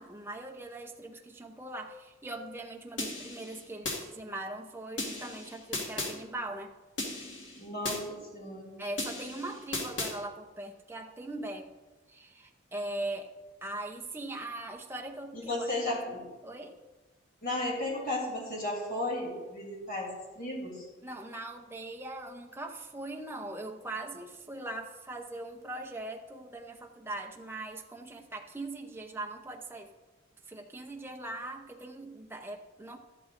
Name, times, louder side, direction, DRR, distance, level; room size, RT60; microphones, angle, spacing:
voice 1, 0.0-6.7 8.8-11.7 12.1-13.3 13.6-16.0 16.4-16.8 21.0-29.9 30.5-33.0, right 2 dB, 10° right, 3 dB, 0.6 m, -41 dB
sound 1, 3.0-4.0 5.0-6.1 7.0-8.0 9.0-10.1, left 2 dB, 60° left, 1.8 m, -36 dB
voice 2, 7.6-8.8 15.3-16.2 17.4-20.9, left 1 dB, 45° left, -2 dB, 3.0 m, -34 dB
13.0 x 11.5 x 2.6 m, 1.2 s
head